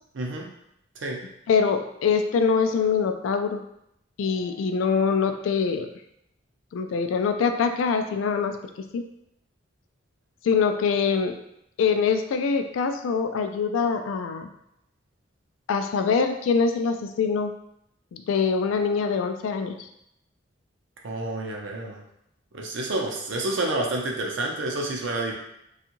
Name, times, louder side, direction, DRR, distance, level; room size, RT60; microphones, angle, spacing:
voice 1, 0.1-0.5 1.0-1.2 21.0-22.0 22.5-25.3, right 2 dB, 70° right, 0 dB, 0.6 m, -29 dB
voice 2, 1.5-3.6 4.2-5.9 6.7-8.6 8.9-9.0 10.4-11.4 11.8-14.5 15.7-17.5 18.1-19.9, left 5 dB, 85° left, 7 dB, 0.3 m, -24 dB
2.6 x 2.3 x 2.9 m, 0.78 s
head